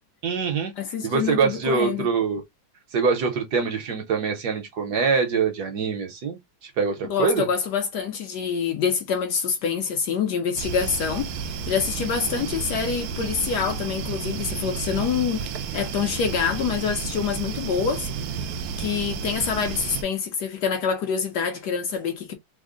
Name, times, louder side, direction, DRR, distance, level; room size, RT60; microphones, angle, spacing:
voice 1, 0.2-0.7 1.0-2.4 2.9-7.5 12.2-12.4, right 5 dB, 65° right, 1.2 m, -24 dB
voice 2, 0.8-2.1 7.0-18.1 18.8-22.3, left 6 dB, 70° left, 1.1 m, -26 dB
sound 1, 10.6-20.0, right 6 dB, 80° right, 0.8 m, -32 dB
3.4 x 2.0 x 3.6 m
omnidirectional pair, 2.1 m